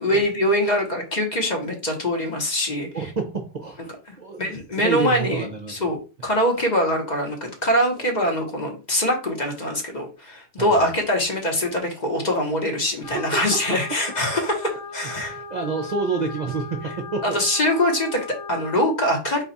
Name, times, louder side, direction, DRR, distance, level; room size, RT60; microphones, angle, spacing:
voice 1, 0.0-2.9 4.4-15.4 17.2-19.4, equal, 40° left, 2 dB, 1.0 m, -23 dB
voice 2, 2.9-5.7 7.9-8.1 10.6-10.9 13.0-13.2 15.2-17.4, right 4 dB, 50° right, 3 dB, 0.6 m, -29 dB
sound 1, 13.0-18.8, left 4 dB, 75° left, 1.0 m, -37 dB
4.2 x 2.3 x 4.0 m, 0.32 s
omnidirectional pair, 1.2 m